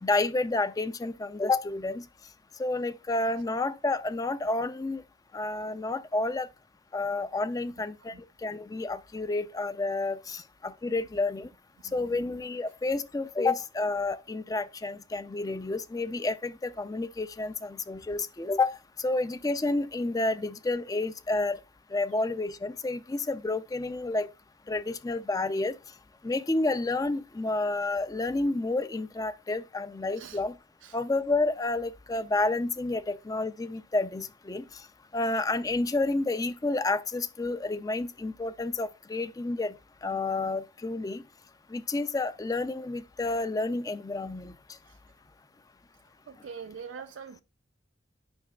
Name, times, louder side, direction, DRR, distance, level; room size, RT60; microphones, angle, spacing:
voice 1, 0.0-2.0 2.6-5.0 5.3-6.5 6.9-8.1 8.4-11.5 11.9-21.6 21.9-24.3 24.7-25.8 26.2-30.5 30.9-34.8 35.1-39.7 40.0-41.2 41.7-44.5, left 2 dB, 20° left, 0.4 m, -30 dB
voice 2, 11.8-12.2 30.2-30.4 30.8-31.0 44.9-45.0 46.3-47.4, right 6 dB, 75° right, 0.4 m, -44 dB
9.6 x 5.8 x 2.3 m
head